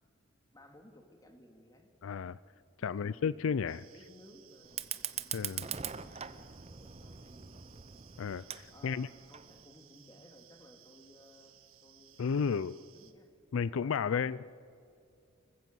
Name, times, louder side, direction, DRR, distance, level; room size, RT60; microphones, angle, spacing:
voice 1, 0.5-1.9 2.8-7.8 8.7-11.6 11.8-13.3 13.6-14.4, left 1 dB, 20° left, 4 dB, 2.5 m, -58 dB
voice 2, 2.0-2.4 2.8-3.8 5.3-5.6 8.2-9.1 12.2-12.7 13.5-14.4, left 6 dB, 75° left, 18 dB, 0.4 m, -32 dB
sound 1, 3.7-13.1, right 11 dB, 85° right, 1.5 m, -61 dB
Fire, 4.6-9.6, right 8 dB, 30° right, 0.8 m, -42 dB
25.5 x 15.5 x 7.6 m, 2.5 s
head